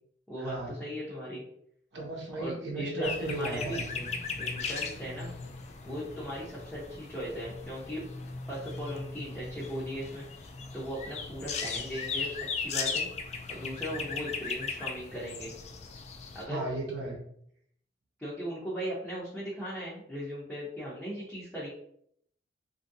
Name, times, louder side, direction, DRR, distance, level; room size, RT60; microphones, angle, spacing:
voice 1, 0.3-1.4 2.4-3.8 4.4-5.3 5.8-8.0 8.5-10.3 10.7-12.3 12.5-13.1 13.5-15.5 16.3-16.6 18.2-21.7, equal, 5° left, -9 dB, 0.7 m, -38 dB
voice 2, 1.9-4.0 16.5-17.2, right 2 dB, 80° right, -3 dB, 0.8 m, -35 dB
sound 1, 3.0-16.4, left 5 dB, 35° left, 0.3 m, -37 dB
3.0 x 2.7 x 2.6 m, 0.69 s
head